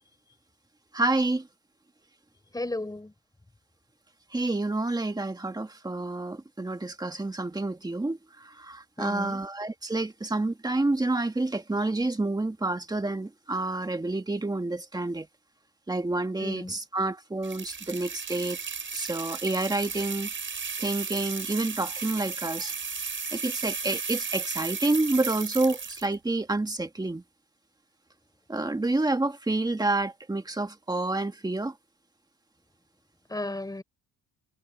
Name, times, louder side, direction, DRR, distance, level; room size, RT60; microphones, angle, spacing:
voice 1, 0.9-1.5 4.3-15.3 15.9-18.6 18.9-20.3 20.8-22.7 23.3-27.2 28.5-31.7, right 2 dB, 10° right, 1.8 m, -29 dB
voice 2, 2.5-3.1 9.0-9.4 16.4-16.8 33.3-33.8, left 2 dB, 10° left, 3.6 m, -34 dB
sound 1, 17.4-26.1, right 5 dB, 35° right, 5.9 m, -35 dB
cardioid pair, 140°, 36 cm